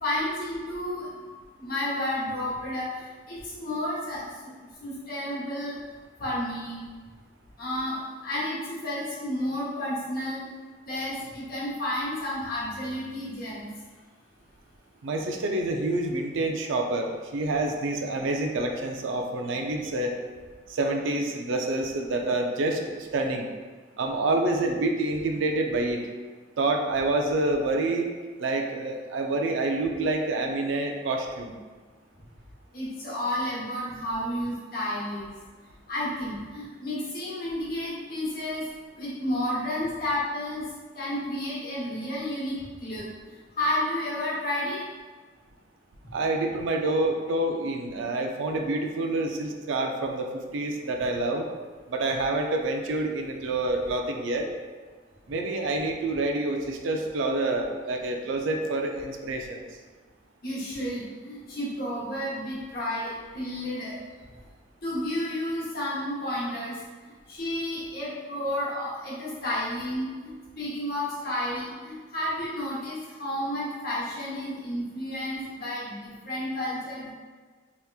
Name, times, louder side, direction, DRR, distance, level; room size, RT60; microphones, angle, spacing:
voice 1, 0.0-1.1 1.6-4.5 4.8-5.8 6.2-6.8 7.6-10.5 10.9-13.7 32.7-35.2 35.9-38.6 38.9-40.6 40.9-43.1 43.6-44.8 60.4-64.0 64.8-66.8 67.3-77.1, left 1 dB, 50° left, -7 dB, 1.0 m, -31 dB
voice 2, 15.0-20.2 20.7-23.5 24.0-26.0 26.6-28.1 28.4-31.5 46.1-51.5 51.9-54.5 55.3-59.6, right 2 dB, 85° right, 3 dB, 0.4 m, -27 dB
3.4 x 2.9 x 2.3 m, 1.4 s
head